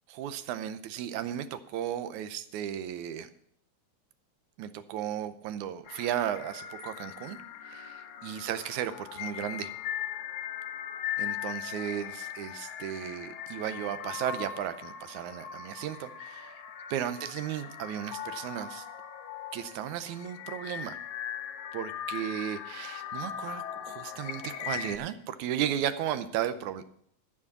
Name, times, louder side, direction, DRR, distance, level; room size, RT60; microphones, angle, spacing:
voice 1, 0.1-3.3 4.6-7.4 7.7-9.7 11.2-16.5 16.9-18.9 19.5-21.0 21.7-26.9, right 10 dB, 85° right, 11 dB, 2.2 m, -35 dB
sound 1, 5.9-25.0, left 10 dB, 85° left, 1.2 m, -39 dB
13.0 x 4.9 x 8.3 m, 0.68 s
omnidirectional pair, 3.4 m